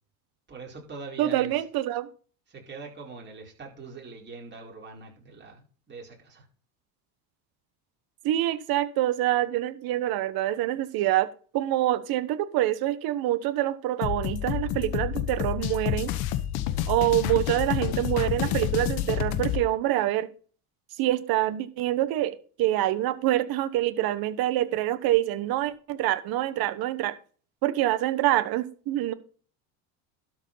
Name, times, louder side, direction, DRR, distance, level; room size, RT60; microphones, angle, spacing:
voice 1, 0.5-1.6 2.5-6.5, right 4 dB, 25° right, -1 dB, 4.5 m, -42 dB
voice 2, 1.2-2.1 8.2-16.1 16.9-20.3 21.0-27.1 27.6-29.1, right 14 dB, 55° right, 13 dB, 1.2 m, -26 dB
sound 1, 14.0-19.6, left 12 dB, 55° left, 1.2 m, -29 dB
12.5 x 4.9 x 5.6 m, 0.41 s
supercardioid pair, 115°, 44 cm